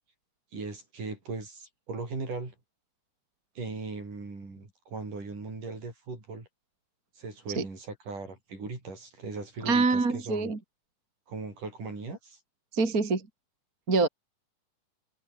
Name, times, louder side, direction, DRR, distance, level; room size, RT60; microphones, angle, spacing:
voice 1, 0.5-2.5 3.6-6.5 7.2-10.5 11.3-12.4, right 3 dB, 55° right, 8.9 m, -38 dB
voice 2, 9.6-10.6 12.7-13.3 13.9-14.1, right 3 dB, 25° right, 3.2 m, -25 dB
omnidirectional pair, 4.3 m